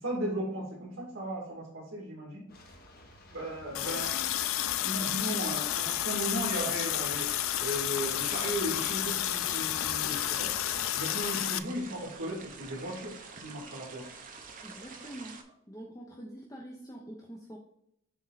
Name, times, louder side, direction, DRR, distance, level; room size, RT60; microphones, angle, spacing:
voice 1, 0.0-2.4 3.3-4.2 4.8-10.5 10.9-13.1 13.4-14.1, right 1 dB, 65° right, -6 dB, 2.6 m, -36 dB
sound 1, 2.5-11.1, equal, 50° left, 1.4 m, -51 dB
Water tap faucet, 3.7-11.6, left 13 dB, 80° left, 0.4 m, -31 dB
sound 2, 5.8-15.4, right 5 dB, 40° right, 0.9 m, -49 dB
voice 2, 14.6-15.4 15.7-17.6, right 1 dB, 15° left, -1 dB, 0.8 m, -45 dB
7.9 x 3.8 x 4.1 m, 0.76 s
head